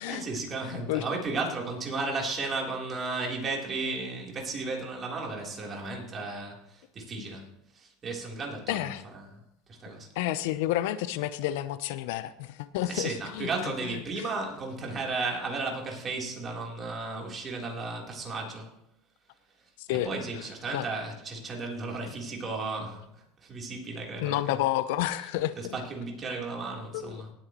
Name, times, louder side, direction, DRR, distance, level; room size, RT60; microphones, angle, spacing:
voice 1, 0.0-7.5 7.7-9.4 9.7-10.1 12.8-18.8 19.9-24.6 25.1-27.3, right 3 dB, 30° right, 3.6 m, -34 dB
voice 2, 0.6-1.0 8.7-9.0 10.1-14.2 19.8-20.1 20.7-20.9 24.2-25.7 26.9-27.2, left 14 dB, 75° left, 0.7 m, -30 dB
18.5 x 9.0 x 3.1 m
supercardioid pair, 110°, 0 cm